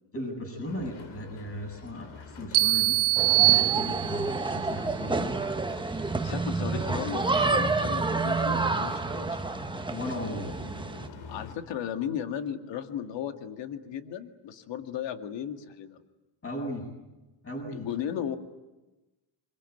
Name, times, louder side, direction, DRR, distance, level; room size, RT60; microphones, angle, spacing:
voice 1, 0.1-3.0 3.3-5.3 9.9-10.4 16.4-16.9 17.4-17.9, left 1 dB, 30° left, 3 dB, 7.8 m, -36 dB
sound 1, 0.6-11.6, left 4 dB, 85° left, 4.2 m, -46 dB
sound 2, 2.5-4.4, right 20 dB, 55° right, 1.3 m, -23 dB
sound 3, 3.2-11.1, right 3 dB, 10° right, 1.1 m, -29 dB
voice 2, 6.2-9.5 11.3-16.0 17.7-18.4, left 9 dB, 65° left, 6 dB, 2.2 m, -35 dB
24.5 x 23.0 x 9.4 m, 1.1 s
cardioid pair, 120°, 47 cm